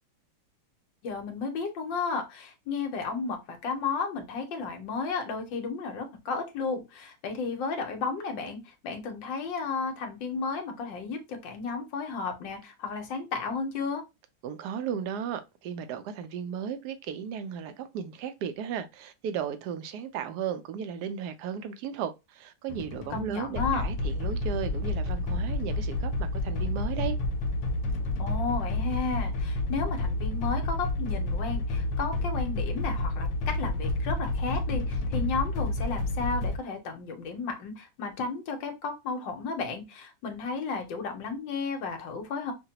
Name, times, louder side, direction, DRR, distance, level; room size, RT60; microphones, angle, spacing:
voice 1, 1.0-14.0 23.1-23.8 28.2-33.3 33.6-42.5, left 4 dB, 70° left, 1.5 m, -33 dB
voice 2, 14.4-27.2, right 8 dB, 75° right, 0.9 m, -35 dB
sound 1, 22.7-36.6, left 2 dB, 90° left, 1.5 m, -30 dB
5.7 x 2.2 x 2.8 m
omnidirectional pair, 2.1 m